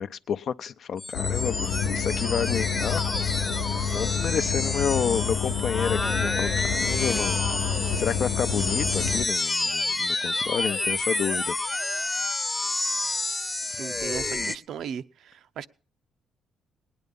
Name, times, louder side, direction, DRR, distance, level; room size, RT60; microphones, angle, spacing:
voice 1, 0.0-3.1 3.9-7.4 8.0-11.6, left 7 dB, 60° left, 0.6 m, -30 dB
sound 1, 1.0-14.6, left 2 dB, 20° left, 0.8 m, -29 dB
sound 2, 1.1-9.3, left 7 dB, 90° left, 0.9 m, -29 dB
voice 2, 13.7-15.7, right 8 dB, 75° right, 0.6 m, -37 dB
19.0 x 9.7 x 5.3 m
cardioid pair, 90°, 0 cm